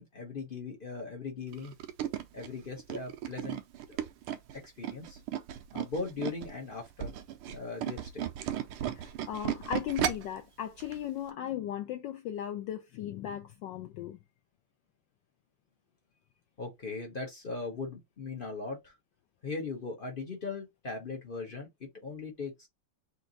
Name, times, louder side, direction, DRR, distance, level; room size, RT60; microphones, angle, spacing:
voice 1, 0.0-1.7 2.3-3.6 3.9-4.0 4.5-5.2 5.7-7.1 7.5-8.3 16.6-19.0 19.4-22.7, left 4 dB, 55° left, 0.6 m, -39 dB
Tools, 1.5-6.5 6.9-10.4 10.8-11.0 11.3-11.4, right 11 dB, 85° right, 1.5 m, -35 dB
voice 2, 8.9-14.2, left 11 dB, 75° left, 1.1 m, -37 dB
4.4 x 2.6 x 3.9 m
omnidirectional pair, 2.4 m